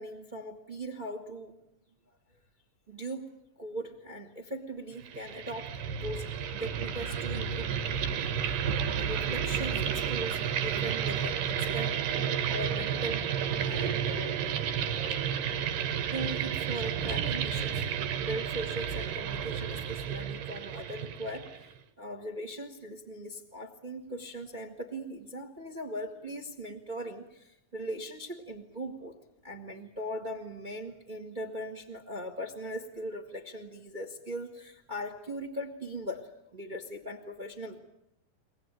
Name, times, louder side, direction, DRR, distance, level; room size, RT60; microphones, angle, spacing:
voice 1, 0.0-1.5 2.9-3.3 3.6-5.7 5.9-6.3 6.6-8.6 9.0-11.4 11.7-12.1 12.5-13.3 13.6-14.4 16.1-17.9 18.2-29.1 29.4-37.8, right 1 dB, 30° right, 5 dB, 0.9 m, -39 dB
sound 1, 5.0-21.7, right 8 dB, 75° right, 2.6 m, -31 dB
23.0 x 19.0 x 9.1 m, 0.81 s
omnidirectional pair, 4.0 m